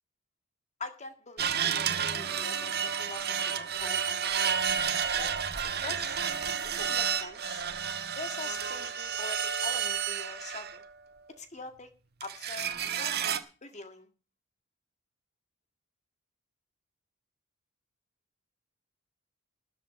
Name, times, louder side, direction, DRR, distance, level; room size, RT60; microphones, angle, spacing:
voice 1, 0.8-2.7 3.0-4.4 4.7-5.4 5.8-7.6 8.2-10.8 11.4-11.9 12.2-13.1 13.6-14.1, left 3 dB, 35° left, 7 dB, 1.8 m, -44 dB
sound 1, 1.4-11.0 12.2-13.4, right 8 dB, 50° right, 1.5 m, -31 dB
13.5 x 8.3 x 8.5 m, 0.37 s
head